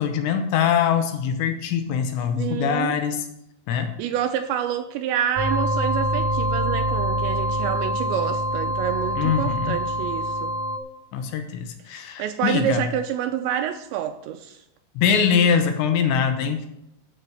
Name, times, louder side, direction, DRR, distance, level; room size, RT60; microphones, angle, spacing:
voice 1, 0.0-3.2 3.7-3.9 9.2-9.8 11.1-12.8 15.0-16.7, left 7 dB, 75° left, 3.0 m, -23 dB
voice 2, 2.4-3.0 4.0-10.5 12.2-14.6, right 10 dB, 85° right, 2.6 m, -27 dB
sound 1, 5.4-10.8, equal, 55° right, 2.1 m, -25 dB
13.5 x 5.8 x 7.9 m
omnidirectional pair, 5.6 m